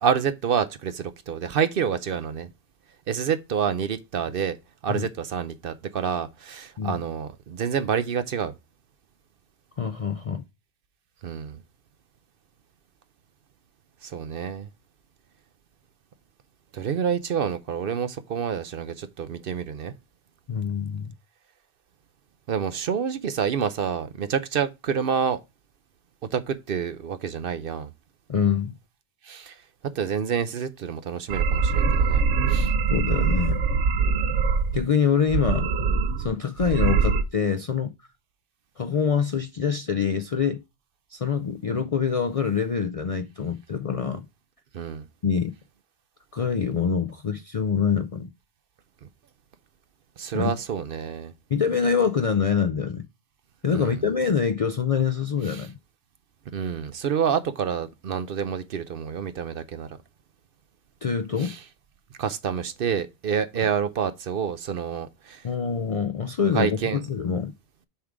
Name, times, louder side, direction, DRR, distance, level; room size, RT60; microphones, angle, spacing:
voice 1, 0.0-2.5 3.1-4.6 4.8-8.6 11.2-11.6 14.0-14.7 16.7-19.9 22.5-25.4 26.3-27.9 29.2-29.6 29.9-32.2 32.5-32.7 44.7-45.1 50.2-51.3 53.7-54.0 55.5-55.7 56.5-59.9 61.4-61.6 62.2-65.5 66.5-67.0, right 7 dB, 60° right, 0.8 m, -28 dB
voice 2, 9.8-10.4 20.5-21.1 28.3-28.7 32.9-33.6 34.7-35.7 36.2-37.9 38.8-40.6 41.1-44.2 45.2-45.5 46.3-48.3 50.3-50.5 51.5-53.1 53.6-55.7 61.0-61.5 65.4-66.8 67.0-67.5, left 6 dB, 50° left, 0.4 m, -25 dB
sound 1, 31.3-34.8 35.3-36.3 36.6-37.2, right 5 dB, 90° right, 1.0 m, -23 dB
7.1 x 3.7 x 4.8 m
omnidirectional pair, 1.2 m